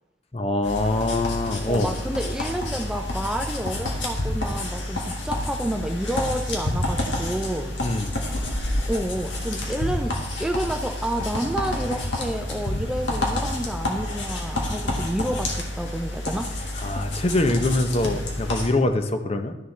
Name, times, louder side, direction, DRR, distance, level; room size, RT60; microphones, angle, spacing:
voice 1, 0.3-1.9 7.8-8.2 16.8-19.5, left 2 dB, 35° left, 8 dB, 0.6 m, -24 dB
sound 1, 0.6-18.7, left 1 dB, 75° left, 1.8 m, -29 dB
voice 2, 1.7-7.8 8.9-16.5, right 1 dB, 5° right, 4 dB, 0.4 m, -29 dB
12.5 x 6.7 x 3.2 m, 1.0 s
head